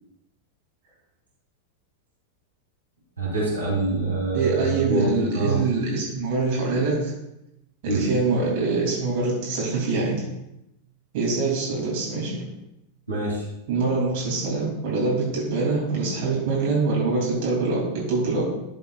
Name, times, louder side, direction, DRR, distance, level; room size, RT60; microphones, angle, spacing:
voice 1, 3.2-5.1 5.3-5.6 7.8-8.0 13.1-13.4, right 2 dB, 80° right, -6 dB, 3.3 m, -25 dB
voice 2, 4.3-7.1 7.8-10.2 11.1-12.4 13.7-18.5, right 3 dB, 50° right, -4 dB, 2.7 m, -24 dB
12.0 x 7.0 x 2.4 m, 0.88 s
figure-of-eight pair, 90°, 0 cm